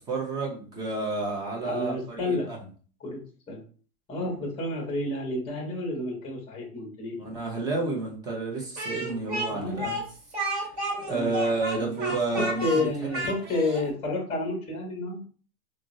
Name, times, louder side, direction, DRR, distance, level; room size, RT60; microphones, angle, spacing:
voice 1, 0.1-2.6 7.2-10.0 11.0-12.9, right 3 dB, 10° right, -1 dB, 0.4 m, -30 dB
voice 2, 1.6-2.5 3.0-3.2 3.5-3.6 4.1-7.2 9.5-9.8 11.1-11.4 11.7-11.9 12.4-15.2, left 2 dB, 15° left, 0 dB, 0.8 m, -30 dB
Speech, 8.8-13.9, right 1 dB, 30° right, 1.2 m, -32 dB
3.4 x 2.0 x 2.5 m, 0.42 s
hypercardioid pair, 130°, 47 cm